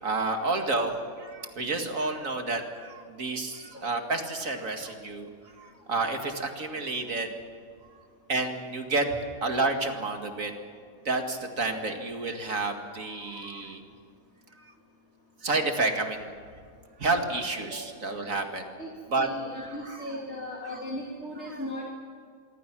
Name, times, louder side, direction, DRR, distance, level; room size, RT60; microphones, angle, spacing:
voice 1, 0.0-5.3 5.6-7.4 8.3-9.1 9.4-10.5 11.0-13.8 15.4-16.3 17.0-18.7 19.1-19.3 19.6-20.2 20.6-20.8 21.4-21.7, right 3 dB, 65° right, 5 dB, 2.5 m, -30 dB
voice 2, 19.2-21.9, left 1 dB, 50° left, -1 dB, 3.2 m, -37 dB
26.0 x 23.5 x 6.2 m, 2.2 s
omnidirectional pair, 1.5 m